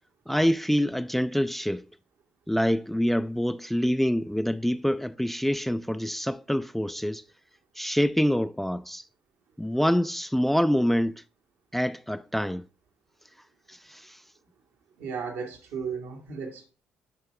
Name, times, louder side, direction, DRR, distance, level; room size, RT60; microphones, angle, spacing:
voice 1, 0.3-1.8 2.5-7.2 7.8-9.0 9.6-11.2 11.7-12.6 13.7-14.2, equal, 5° left, 0.3 m, -26 dB
voice 2, 15.0-16.7, right 6 dB, 80° right, 1.6 m, -35 dB
7.8 x 4.8 x 3.4 m
hypercardioid pair, 60°, 4 cm